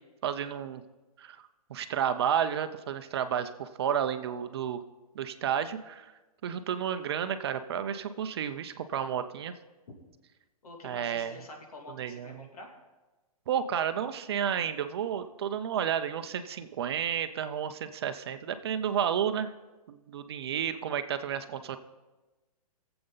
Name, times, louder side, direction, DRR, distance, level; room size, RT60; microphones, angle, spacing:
voice 1, 0.2-0.8 1.2-1.4 1.7-4.8 5.2-6.1 6.4-9.5 10.8-11.3 12.0-12.4 13.5-19.5 19.9-21.8, right 8 dB, 45° right, 9 dB, 0.6 m, -31 dB
voice 2, 10.6-12.8, left 2 dB, 75° left, 1 dB, 2.7 m, -47 dB
20.0 x 7.8 x 4.0 m, 1.2 s
hypercardioid pair, 170°, 19 cm